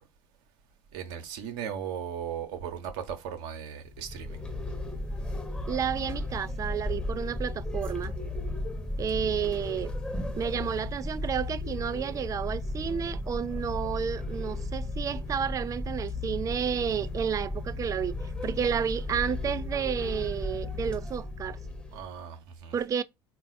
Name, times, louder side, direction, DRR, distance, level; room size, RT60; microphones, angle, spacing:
voice 1, 0.9-4.4 21.9-22.8, right 8 dB, 60° right, 0.9 m, -37 dB
sound 1, 3.9-22.1, left 2 dB, 10° left, 1.0 m, -35 dB
voice 2, 5.7-8.2 9.0-9.9 10.4-18.1 18.4-21.6 22.7-23.0, right 8 dB, 25° right, 0.4 m, -31 dB
3.9 x 2.4 x 4.0 m
figure-of-eight pair, 65°, 13 cm